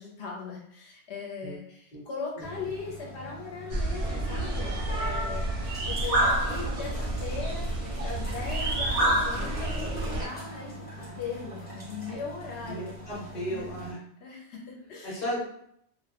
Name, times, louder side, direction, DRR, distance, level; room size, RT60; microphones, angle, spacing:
voice 1, 0.0-13.0 13.5-13.7 14.2-15.3, left 5 dB, 80° left, -2 dB, 1.0 m, -39 dB
sound 1, 2.4-13.9, right 1 dB, 10° left, 0.6 m, -43 dB
sound 2, 3.7-10.3, right 1 dB, 50° right, 0.5 m, -28 dB
voice 2, 12.6-14.0 15.0-15.5, equal, 45° left, -8 dB, 0.8 m, -34 dB
2.2 x 2.0 x 2.8 m, 0.70 s
omnidirectional pair, 1.1 m